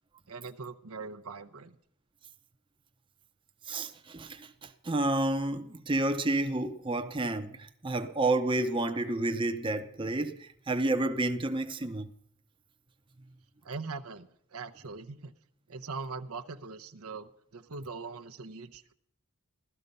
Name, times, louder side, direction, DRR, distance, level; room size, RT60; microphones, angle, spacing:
voice 1, 0.3-1.8 13.6-15.3 15.7-18.9, right 4 dB, 85° right, 0.9 m, -41 dB
voice 2, 3.7-12.1, right 2 dB, 25° right, 0.7 m, -30 dB
16.0 x 13.0 x 5.4 m
head